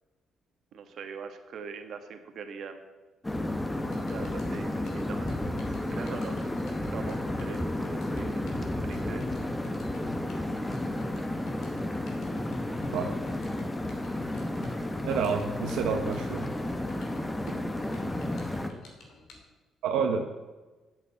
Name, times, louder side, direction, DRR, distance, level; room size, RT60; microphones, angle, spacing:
voice 1, 0.7-2.8 4.1-5.3 5.9-8.5 8.8-9.3, right 6 dB, 65° right, 7 dB, 1.4 m, -42 dB
sound 1, 3.2-18.7, left 1 dB, 15° left, 1.2 m, -32 dB
sound 2, 3.8-19.4, left 1 dB, 75° left, 2.9 m, -46 dB
voice 2, 15.0-16.4 19.8-20.2, right 6 dB, 90° right, 3 dB, 0.9 m, -28 dB
8.7 x 7.9 x 8.1 m, 1.2 s
cardioid pair, 90°, 0 cm